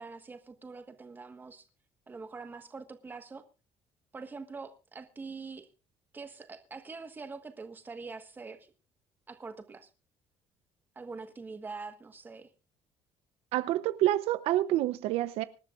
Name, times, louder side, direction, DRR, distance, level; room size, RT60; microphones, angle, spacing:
voice 1, 0.0-1.6 2.1-3.4 4.1-5.7 6.1-8.7 9.3-9.9 10.9-12.5, right 4 dB, 20° right, 1.4 m, -44 dB
voice 2, 13.5-15.4, right 14 dB, 80° right, 0.7 m, -27 dB
25.0 x 12.0 x 2.5 m
cardioid pair, 155°, 10 cm